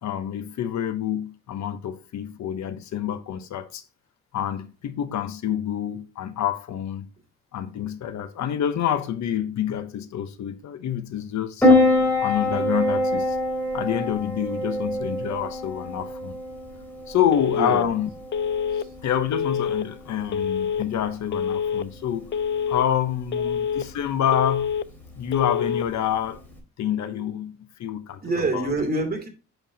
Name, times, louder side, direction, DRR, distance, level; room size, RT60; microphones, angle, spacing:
voice 1, 0.0-3.8 4.3-7.1 7.5-11.7 12.2-13.4 13.7-16.4 17.1-18.1 19.0-22.3 22.7-24.7 25.2-26.4 26.8-28.2 28.5-28.7, left 10 dB, 70° left, 1.0 m, -27 dB
Piano, 11.6-26.6, left 1 dB, 5° left, 3.5 m, -26 dB
Telephone, 17.3-17.8 18.3-18.8 19.3-19.8 20.3-20.8 21.3-21.8 22.3-22.8 23.3-23.8 24.3-24.8 25.3-25.8, left 7 dB, 40° left, 0.5 m, -26 dB
voice 2, 17.5-17.9 18.7-18.9 28.2-29.3, right 2 dB, 30° right, 2.8 m, -26 dB
8.0 x 6.9 x 2.8 m
cardioid pair, 115°, 29 cm